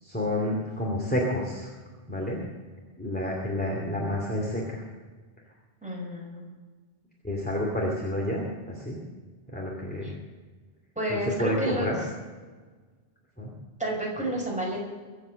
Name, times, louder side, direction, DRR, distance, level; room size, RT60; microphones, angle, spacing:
voice 1, 0.0-1.7 2.1-2.4 3.0-4.8 7.2-9.0 9.5-10.1 11.1-12.0 13.4-13.5, left 1 dB, 10° left, -2 dB, 2.6 m, -29 dB
voice 2, 5.8-6.5 10.0-10.1 11.0-11.9 13.8-14.8, right 1 dB, 5° right, -3 dB, 5.7 m, -30 dB
23.5 x 8.2 x 6.5 m, 1.4 s
omnidirectional pair, 1.1 m